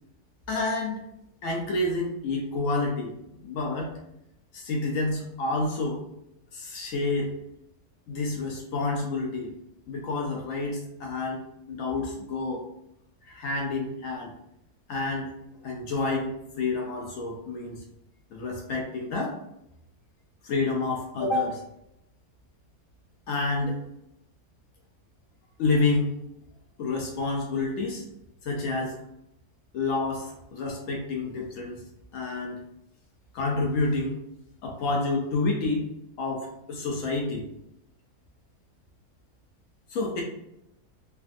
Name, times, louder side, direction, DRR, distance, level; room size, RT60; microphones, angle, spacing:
voice 1, 0.5-1.0 1.4-3.1 3.4-3.9 4.5-6.0 6.5-7.3 8.1-9.5 9.9-12.7 13.2-14.3 14.9-15.3 15.6-17.8 18.3-19.4 20.4-21.6 23.3-23.8 25.6-26.1 26.8-28.0 28.4-28.9 29.7-31.8 32.1-32.6 33.3-34.2 34.6-35.9 36.2-37.5 39.9-40.2, left 3 dB, 70° left, 0 dB, 0.8 m, -29 dB
3.3 x 2.3 x 2.5 m, 0.83 s
omnidirectional pair, 1.7 m